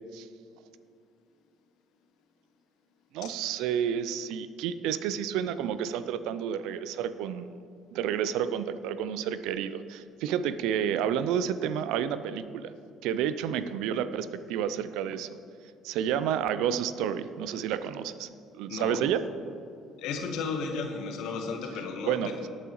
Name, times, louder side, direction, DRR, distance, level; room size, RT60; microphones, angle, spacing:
voice 1, 3.1-7.5 7.9-12.7 13.0-15.4 15.8-18.3 18.5-19.3 22.1-22.5, right 9 dB, 70° right, 13 dB, 0.5 m, -30 dB
voice 2, 18.7-19.1 20.0-22.3, left 4 dB, 65° left, 4 dB, 1.3 m, -34 dB
18.5 x 8.7 x 3.1 m, 2.5 s
hypercardioid pair, 55°, 0 cm